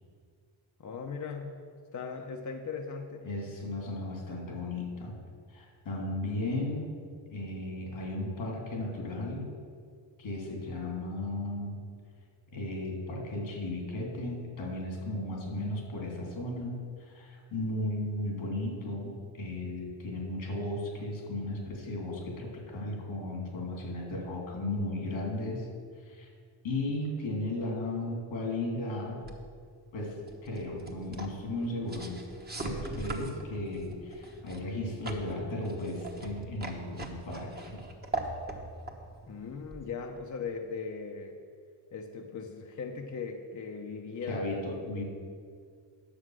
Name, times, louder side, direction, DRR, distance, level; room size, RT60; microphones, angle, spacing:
voice 1, 0.8-1.6 1.9-3.3 39.3-41.4 41.9-44.4, left 5 dB, 40° left, 3 dB, 0.8 m, -38 dB
voice 2, 3.2-5.1 5.5-7.0 7.3-9.5 10.2-11.8 12.5-25.7 26.0-26.3 26.6-29.2 29.9-32.2 32.5-37.8 44.2-45.0, left 1 dB, 90° left, -1 dB, 2.9 m, -35 dB
sound 1, 29.2-40.4, right 2 dB, 20° right, 1.3 m, -42 dB
9.9 x 6.9 x 6.3 m, 2.1 s
cardioid pair, 95°, 45 cm